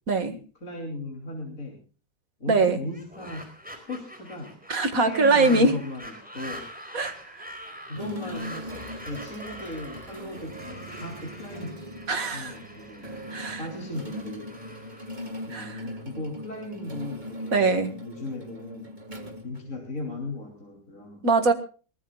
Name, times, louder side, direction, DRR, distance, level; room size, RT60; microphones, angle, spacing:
voice 1, 0.1-0.4 2.5-2.8 4.7-5.7 6.9-7.4 12.1-12.6 13.3-13.6 15.5-15.8 17.5-17.9 21.2-21.5, right 3 dB, 55° right, 9 dB, 2.2 m, -22 dB
voice 2, 0.6-1.8 2.4-3.4 3.9-4.6 5.0-6.6 7.8-11.8 12.3-13.1 13.6-14.5 15.5-17.7 18.0-18.9 19.4-21.2, left 1 dB, 50° left, 1 dB, 3.6 m, -37 dB
sound 1, 2.8-16.0, equal, 5° right, 4.4 m, -44 dB
sound 2, 8.0-20.2, equal, 25° right, 2.1 m, -40 dB
23.5 x 18.5 x 2.4 m, 0.36 s
omnidirectional pair, 1.8 m